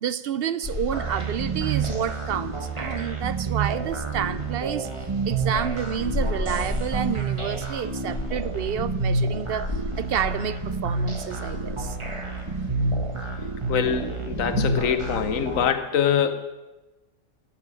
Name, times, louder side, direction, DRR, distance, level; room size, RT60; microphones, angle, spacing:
voice 1, 0.0-4.9 5.3-9.7 10.0-12.0, right 8 dB, 60° right, 15 dB, 0.6 m, -29 dB
sound 1, 0.6-15.6, left 2 dB, 25° left, 2.2 m, -36 dB
sound 2, 0.9-15.7, right 3 dB, 25° right, 1.4 m, -29 dB
voice 2, 13.7-16.5, left 8 dB, 85° left, 9 dB, 1.2 m, -24 dB
14.5 x 6.1 x 9.5 m, 1.1 s
omnidirectional pair, 1.4 m